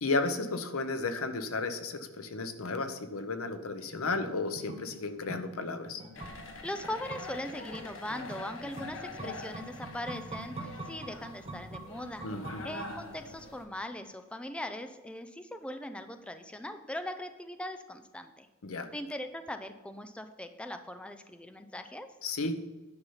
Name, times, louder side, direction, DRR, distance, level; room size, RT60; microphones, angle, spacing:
voice 1, 0.0-6.0 12.2-12.7 18.6-18.9 22.2-22.6, left 3 dB, 85° left, 9 dB, 0.8 m, -33 dB
sound 1, 3.9-13.4 13.7-13.8, right 1 dB, 30° right, 0.8 m, -45 dB
sound 2, 6.1-13.6, left 2 dB, 65° left, 1.3 m, -45 dB
voice 2, 6.6-12.2 12.6-18.5 18.9-22.1, left 1 dB, 5° left, 8 dB, 0.4 m, -40 dB
9.8 x 5.5 x 5.6 m, 1.2 s
head